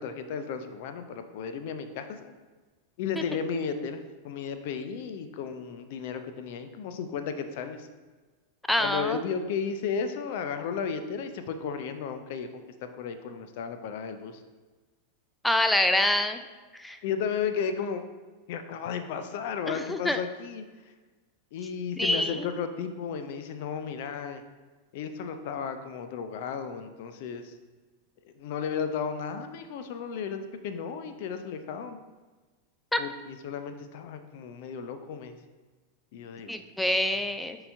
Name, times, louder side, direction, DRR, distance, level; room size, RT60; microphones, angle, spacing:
voice 1, 0.0-2.3 3.0-7.9 8.8-14.4 17.0-18.0 18.5-20.6 21.5-24.4 24.9-27.5 28.2-32.0 33.0-35.3 36.1-36.5, left 6 dB, 50° left, 8 dB, 0.6 m, -34 dB
voice 2, 8.7-9.2 15.4-16.4 16.8-17.0 19.7-20.2 22.0-22.5 32.9-33.0 36.5-37.6, left 1 dB, 5° left, 8 dB, 0.4 m, -26 dB
11.0 x 3.9 x 2.7 m, 1.3 s
figure-of-eight pair, 90°, 0 cm